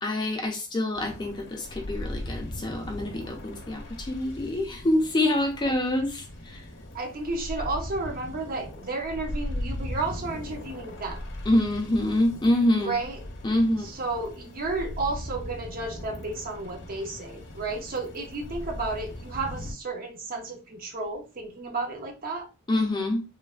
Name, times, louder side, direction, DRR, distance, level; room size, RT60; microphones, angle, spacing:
voice 1, 0.0-6.7 11.5-12.9 13.4-13.9 22.7-23.2, left 1 dB, 20° left, 0.4 m, -26 dB
sound 1, 0.9-19.7, left 1 dB, 55° left, 0.7 m, -39 dB
voice 2, 6.9-11.2 12.8-13.2 13.8-22.5, right 3 dB, 40° right, 0.5 m, -32 dB
3.1 x 2.0 x 2.3 m
head